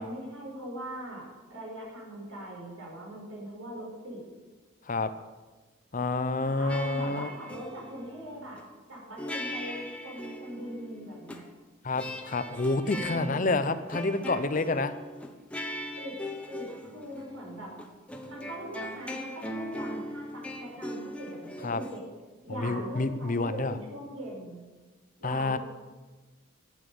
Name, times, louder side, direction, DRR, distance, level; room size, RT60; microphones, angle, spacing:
voice 1, 0.0-4.2 6.4-8.6 8.9-11.4 13.0-13.8 16.0-16.2 16.5-17.7 18.2-22.0 22.4-24.6 25.2-25.6, right 1 dB, 85° right, -2 dB, 5.5 m, -41 dB
voice 2, 5.9-7.3 11.8-14.9 21.6-21.8 22.6-23.7 25.2-25.6, left 3 dB, 40° left, 12 dB, 0.6 m, -28 dB
sound 1, 6.7-8.6 9.2-11.4 11.9-22.0, left 1 dB, 5° left, 0.8 m, -40 dB
12.5 x 9.1 x 6.8 m, 1.3 s
head